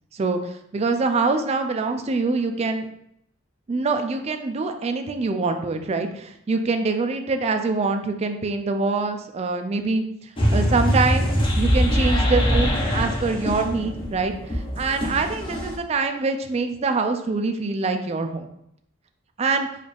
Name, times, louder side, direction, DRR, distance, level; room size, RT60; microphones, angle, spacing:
voice 1, 0.1-2.9 3.7-18.5 19.4-19.7, right 3 dB, 30° right, 6 dB, 0.3 m, -25 dB
sound 1, 10.4-15.7, equal, 25° left, 0.7 m, -23 dB
4.0 x 2.4 x 3.3 m, 0.74 s
head